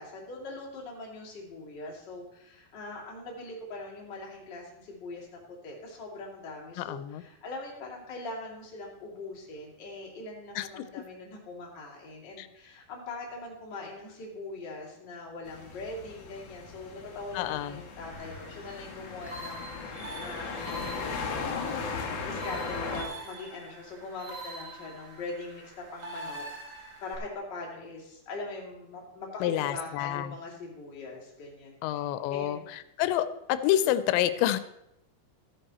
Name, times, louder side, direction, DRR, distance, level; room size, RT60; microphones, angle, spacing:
voice 1, 0.0-5.3 5.6-21.7 22.2-32.7 34.1-34.4, left 2 dB, 30° left, -2 dB, 2.5 m, -42 dB
voice 2, 6.8-7.2 10.6-10.7 12.4-12.5 17.3-17.8 29.4-30.3 31.8-32.6 33.0-34.6, left 12 dB, 90° left, 13 dB, 2.9 m, -28 dB
sound 1, 15.5-23.0, left 4 dB, 65° left, 1.6 m, -37 dB
sound 2, 18.1-27.1, right 1 dB, 55° right, 1.2 m, -44 dB
14.0 x 9.0 x 4.2 m, 0.87 s
omnidirectional pair, 5.1 m